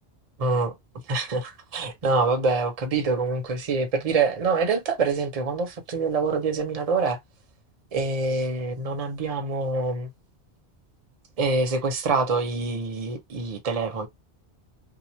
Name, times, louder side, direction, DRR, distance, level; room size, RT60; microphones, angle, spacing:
voice 1, 0.4-0.8 1.1-7.2 7.9-10.1 11.4-14.1, right 4 dB, 40° right, 0.7 m, -25 dB
2.9 x 2.0 x 2.8 m
omnidirectional pair, 1.1 m